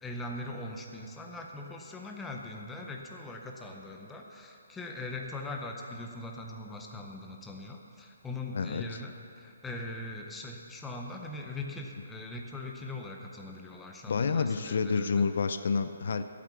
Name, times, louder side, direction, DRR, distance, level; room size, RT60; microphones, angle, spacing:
voice 1, 0.0-15.1, left 2 dB, 5° left, 1 dB, 0.6 m, -41 dB
voice 2, 8.5-9.0 14.1-16.2, left 5 dB, 50° left, 10 dB, 0.5 m, -29 dB
12.5 x 8.5 x 6.8 m, 2.5 s
hypercardioid pair, 175°, 0 cm